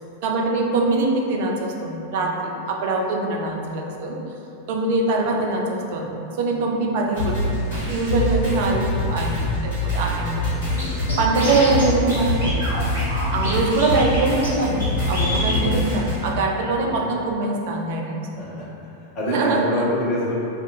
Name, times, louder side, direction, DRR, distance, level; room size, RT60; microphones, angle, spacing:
voice 1, 0.2-4.2 4.7-10.6 11.2-12.6 13.3-18.2 19.3-19.7, right 3 dB, 50° right, 0 dB, 0.3 m, -23 dB
sound 1, 7.1-16.3, left 2 dB, 65° left, 1.3 m, -25 dB
Scratching (performance technique), 10.8-10.9 11.1-11.8 12.1-12.2 12.4-13.5 13.8-14.2 14.4-14.5 14.8-14.9 15.1-15.6, equal, 80° left, 1.3 m, -26 dB
voice 2, 18.3-18.7 19.1-20.5, left 1 dB, 40° left, -7 dB, 0.8 m, -26 dB
2.5 x 2.3 x 2.7 m, 2.7 s
figure-of-eight pair, 90°, 0 cm